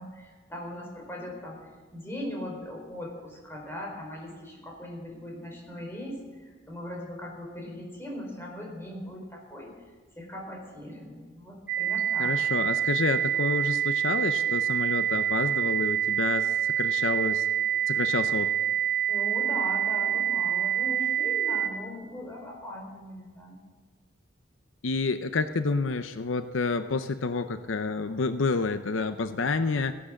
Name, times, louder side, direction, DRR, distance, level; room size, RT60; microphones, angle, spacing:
voice 1, 0.0-9.7 10.2-12.3 19.1-23.6, left 1 dB, 10° left, -1 dB, 4.7 m, -39 dB
sound 1, 11.7-21.7, right 10 dB, 5° right, 5.3 m, -26 dB
voice 2, 12.2-17.5 17.9-18.5 24.8-30.0, left 4 dB, 80° left, 10 dB, 0.7 m, -29 dB
17.0 x 11.5 x 7.3 m, 1.5 s
head